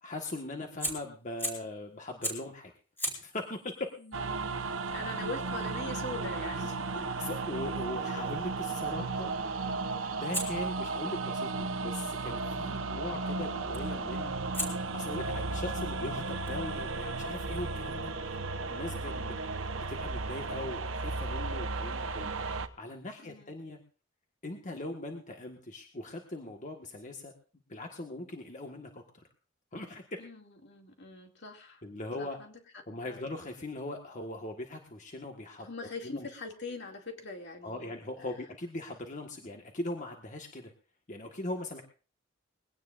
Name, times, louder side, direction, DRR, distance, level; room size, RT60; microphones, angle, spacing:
voice 1, 0.0-2.7 3.2-3.8 7.2-9.3 10.0-14.3 14.9-19.1 19.9-22.3 22.8-23.8 24.4-27.3 27.7-29.2 29.7-30.2 31.8-32.4 32.9-35.7 36.0-36.3 37.6-40.7 41.1-41.8, left 1 dB, 40° left, 3 dB, 1.6 m, -40 dB
Fire, 0.8-1.8 2.2-2.6 3.0-7.9 10.3-12.4 13.7-14.0 14.5-18.0, equal, 10° left, 4.8 m, -42 dB
voice 2, 4.0-7.1 12.6-13.0 19.1-19.4 23.2-23.5 30.2-31.8 32.2-33.2 35.6-38.0, left 2 dB, 60° left, 3 dB, 2.5 m, -43 dB
sound 1, 4.1-22.7, right 3 dB, 85° right, 1.1 m, -34 dB
21.5 x 17.5 x 2.6 m, 0.38 s
head